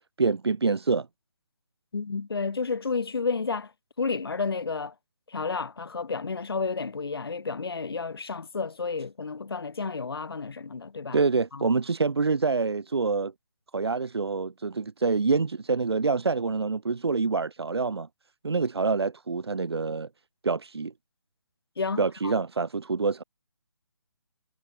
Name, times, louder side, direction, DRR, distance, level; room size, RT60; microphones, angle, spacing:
voice 1, 0.2-1.1 11.1-13.3 13.7-18.1 18.4-20.1 20.4-20.9 22.0-23.2, right 4 dB, 80° right, 1.8 m, -26 dB
voice 2, 1.9-3.7 4.0-4.9 5.3-11.2 11.5-11.7 21.8-22.3, left 4 dB, 65° left, 2.0 m, -31 dB
hypercardioid pair, 175°, 13 cm